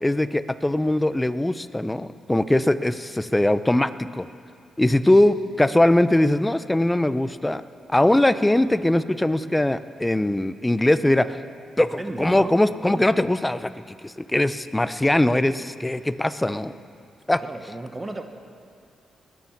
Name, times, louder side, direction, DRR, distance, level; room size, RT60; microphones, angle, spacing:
voice 1, 0.0-4.3 4.8-7.6 7.9-11.4 11.8-11.9 12.2-13.7 14.0-16.7 17.3-17.4, left 1 dB, 10° left, 13 dB, 0.6 m, -21 dB
voice 2, 11.8-13.1 17.4-18.2, right 2 dB, 25° right, 6 dB, 1.2 m, -36 dB
21.0 x 9.7 x 5.9 m, 2.3 s
cardioid pair, 75°, 0 cm